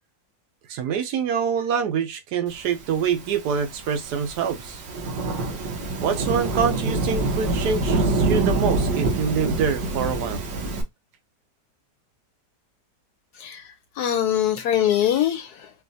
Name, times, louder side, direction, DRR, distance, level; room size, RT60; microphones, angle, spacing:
voice 1, 0.7-4.8 6.0-10.4, right 7 dB, 70° right, 1.2 m, -25 dB
Thunderstorm / Rain, 3.1-10.8, right 2 dB, 85° right, 1.7 m, -26 dB
voice 2, 13.3-15.7, left 10 dB, 70° left, 1.0 m, -23 dB
4.6 x 2.6 x 2.6 m
omnidirectional pair, 1.9 m